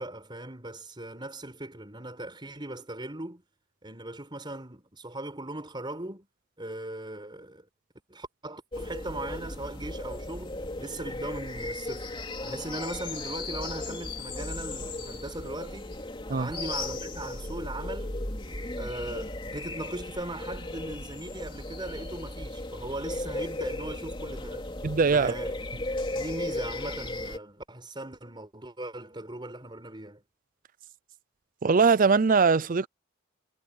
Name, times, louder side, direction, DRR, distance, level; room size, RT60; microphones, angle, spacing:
voice 1, 0.0-3.4 3.8-6.3 6.6-7.7 8.1-12.1 12.4-16.0 16.3-18.2 18.8-24.7 25.1-25.5 26.1-30.2, right 1 dB, 25° right, 4.7 m, -39 dB
sound 1, 8.7-27.4, left 2 dB, 25° left, 3.4 m, -36 dB
voice 2, 24.8-25.3 31.6-32.9, right 5 dB, 40° right, 0.5 m, -21 dB
head